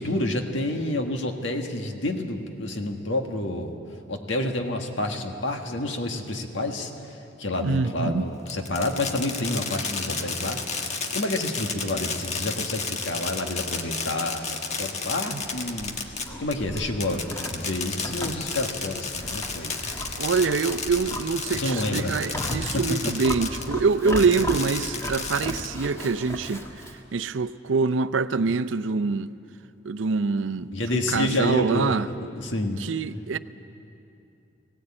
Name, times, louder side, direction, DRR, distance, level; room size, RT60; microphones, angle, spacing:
voice 1, 0.0-3.7 4.1-16.0 16.4-19.8 21.5-22.2 22.7-23.0 30.7-32.0 32.3-32.9, left 1 dB, 80° left, 1.7 m, -29 dB
voice 2, 7.6-8.2 15.3-15.4 20.2-26.6 27.1-29.3 29.8-32.1 32.8-33.4, right 4 dB, 80° right, 0.6 m, -25 dB
Fireworks, 8.5-23.7 24.1-25.9, left 5 dB, 35° left, 1.3 m, -32 dB
Livestock farm animals working animals, 15.3-27.0, equal, 15° left, 1.8 m, -36 dB
18.5 x 17.5 x 8.8 m
head